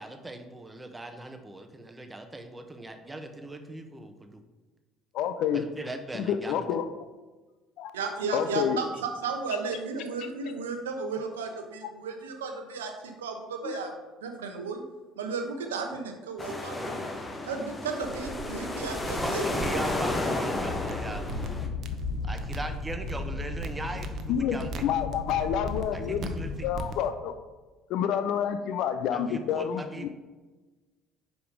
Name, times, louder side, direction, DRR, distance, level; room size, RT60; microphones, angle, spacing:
voice 1, 0.0-4.4 5.5-6.7 18.7-21.5 22.2-24.9 25.9-26.7 29.1-30.1, right 2 dB, 15° right, 6 dB, 0.9 m, -39 dB
voice 2, 5.1-5.6 6.1-6.9 7.8-7.9 8.3-8.8 11.8-11.9 13.6-13.9 24.3-27.3 27.9-30.1, left 9 dB, 65° left, 10 dB, 0.4 m, -29 dB
voice 3, 7.9-13.9 14.2-14.8 15.2-17.1 17.4-19.8, right 4 dB, 90° right, 4 dB, 0.8 m, -34 dB
sound 1, 16.4-21.7, left 2 dB, 20° left, 1.0 m, -32 dB
sound 2, 18.0-27.1, right 3 dB, 55° right, 0.6 m, -41 dB
sound 3, 20.6-26.9, left 4 dB, 85° left, 1.3 m, -36 dB
5.1 x 4.9 x 4.9 m, 1.3 s
hypercardioid pair, 65°, 0 cm